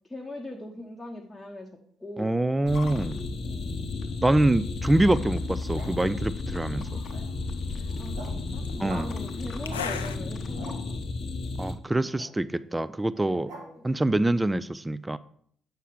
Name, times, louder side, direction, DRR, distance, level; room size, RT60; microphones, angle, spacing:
voice 1, 0.1-1.7 2.0-2.3 3.4-3.7 7.7-11.0 13.3-14.1, left 1 dB, 10° left, 0 dB, 0.9 m, -41 dB
voice 2, 2.2-3.2 4.2-7.0 8.8-9.1 11.6-13.5 13.8-15.2, right 1 dB, 15° right, 16 dB, 0.3 m, -25 dB
sound 1, 2.7-11.7, left 3 dB, 45° left, 0.7 m, -33 dB
sound 2, 5.0-10.2, left 7 dB, 80° left, 0.4 m, -42 dB
sound 3, 5.5-6.1 6.8-7.4 7.8-8.4 8.8-9.1 9.6-9.8 10.2-10.8 12.1-12.3 13.1-13.6, right 3 dB, 70° right, 1.8 m, -45 dB
7.3 x 5.5 x 3.6 m, 0.62 s
figure-of-eight pair, 45°, 0 cm